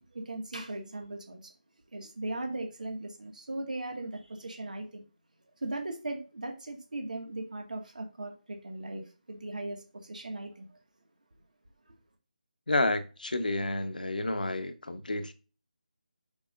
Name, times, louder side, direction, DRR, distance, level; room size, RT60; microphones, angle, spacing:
voice 1, 0.1-1.4 1.9-5.0 5.6-9.0 9.3-9.8 10.0-10.7, right 2 dB, 60° right, 2.0 m, -38 dB
voice 2, 12.7-15.3, left 2 dB, 70° left, 1.2 m, -30 dB
8.5 x 5.8 x 2.6 m
figure-of-eight pair, 155°, 5 cm